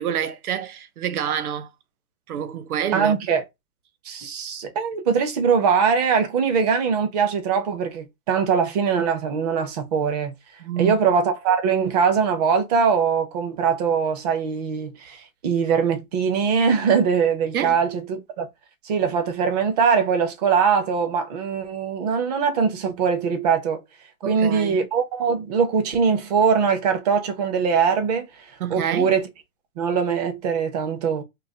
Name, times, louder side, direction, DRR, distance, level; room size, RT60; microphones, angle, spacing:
voice 1, 0.0-1.7 2.3-3.1 10.6-11.0 17.5-17.7 24.2-24.8 28.6-29.1, right 9 dB, 85° right, 0.9 m, -27 dB
voice 2, 2.9-3.4 4.0-10.3 10.8-18.5 18.8-23.8 24.3-29.3 29.8-31.2, right 6 dB, 30° right, 0.7 m, -22 dB
3.9 x 2.8 x 2.7 m
hypercardioid pair, 165°, 43 cm